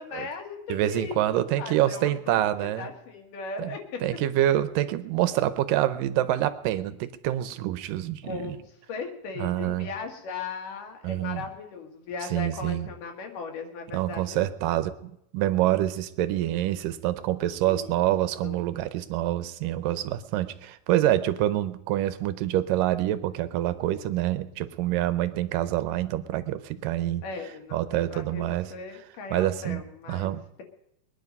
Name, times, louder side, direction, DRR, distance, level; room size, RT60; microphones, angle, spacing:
voice 1, 0.0-4.0 8.2-8.6 8.9-14.4 17.6-17.9 18.4-18.5 27.2-30.6, left 4 dB, 70° left, 4 dB, 3.0 m, -38 dB
voice 2, 0.7-2.9 3.6-8.6 9.4-9.9 11.0-11.4 12.3-12.9 13.9-27.2 27.7-28.7 29.3-29.8 30.1-30.4, right 13 dB, 75° right, 13 dB, 2.3 m, -26 dB
22.0 x 10.0 x 5.4 m, 0.80 s
omnidirectional pair, 4.2 m